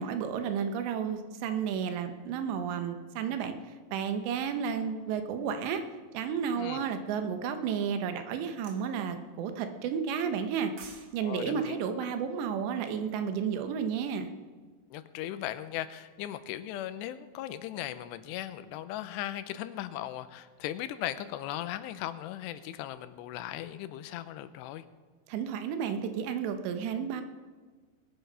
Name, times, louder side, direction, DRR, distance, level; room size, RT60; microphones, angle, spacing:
voice 1, 0.0-3.5 3.9-5.8 6.1-10.7 11.1-14.3 25.3-27.2, right 7 dB, 85° right, 8 dB, 3.3 m, -32 dB
voice 2, 6.5-6.9 11.2-11.8 14.9-24.8, left 12 dB, 85° left, 12 dB, 2.8 m, -38 dB
sound 1, 8.6-8.9 10.5-11.1 11.4-11.6, right 5 dB, 55° right, 1.7 m, -48 dB
20.5 x 9.1 x 5.5 m, 1.4 s
omnidirectional pair, 4.9 m